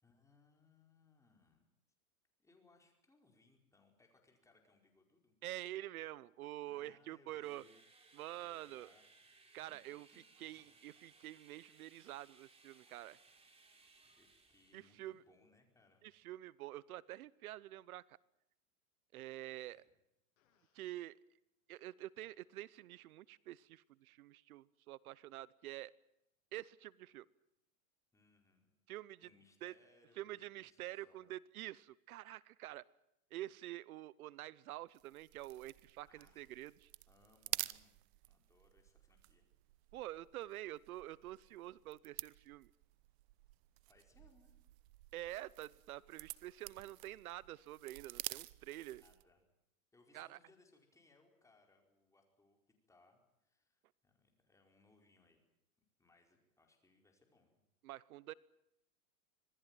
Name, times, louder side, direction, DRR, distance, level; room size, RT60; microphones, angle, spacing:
voice 1, 0.0-1.7 2.4-5.3 6.7-7.7 8.4-9.0 9.6-10.8 14.1-16.1 19.4-19.9 28.1-28.7 29.2-31.3 36.0-36.5 37.1-38.0 38.3-39.5 43.9-44.6 49.0-49.4 49.9-52.6 52.9-55.4 56.0-57.6, left 3 dB, 5° left, 2 dB, 4.9 m, -70 dB
voice 2, 5.4-7.6 8.1-8.9 9.5-10.1 10.4-13.2 14.7-15.2 16.0-18.2 19.1-19.8 20.7-21.2 21.7-25.9 26.5-27.3 28.9-29.3 29.6-29.7 30.2-32.8 33.3-36.9 39.9-42.7 45.1-49.0 50.1-50.4 57.8-58.3, right 15 dB, 75° right, 21 dB, 0.9 m, -47 dB
sound 1, 7.4-15.2, right 3 dB, 15° right, 3.9 m, -66 dB
Fart, 20.4-20.9 22.2-22.4, left 7 dB, 65° left, 7.9 m, -80 dB
sound 2, 34.9-49.3, right 20 dB, 50° right, 0.9 m, -50 dB
26.0 x 19.5 x 9.1 m, 0.82 s
supercardioid pair, 145°, 43 cm